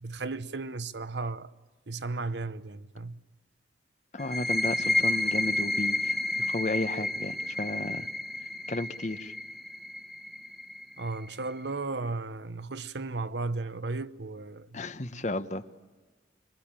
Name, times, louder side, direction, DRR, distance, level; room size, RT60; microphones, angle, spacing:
voice 1, 0.0-1.5 1.9-3.2 11.0-14.8, right 3 dB, 70° right, 0.9 m, -35 dB
voice 2, 4.1-6.1 6.5-8.1 8.7-9.3 14.7-15.6, left 2 dB, 40° left, 1.1 m, -33 dB
sound 1, 4.2-11.6, left 2 dB, ahead, 1.3 m, -31 dB
26.0 x 24.0 x 8.9 m
head